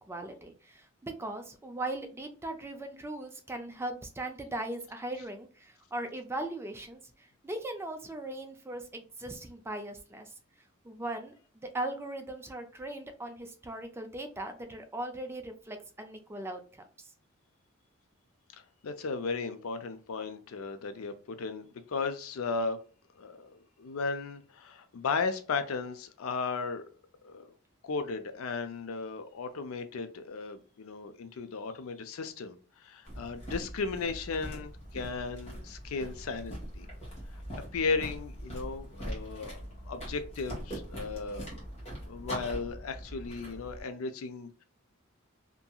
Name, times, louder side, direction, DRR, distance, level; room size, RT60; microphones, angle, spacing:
voice 1, 0.1-10.3 10.8-17.1, right 1 dB, 10° right, 6 dB, 0.4 m, -39 dB
voice 2, 18.8-22.8 23.2-26.9 27.2-27.5 27.8-36.9 37.7-41.6 42.1-44.6, left 4 dB, 80° left, 9 dB, 0.4 m, -35 dB
sound 1, 33.0-43.8, equal, 30° left, 1.3 m, -42 dB
2.7 x 2.6 x 2.3 m, 0.39 s
head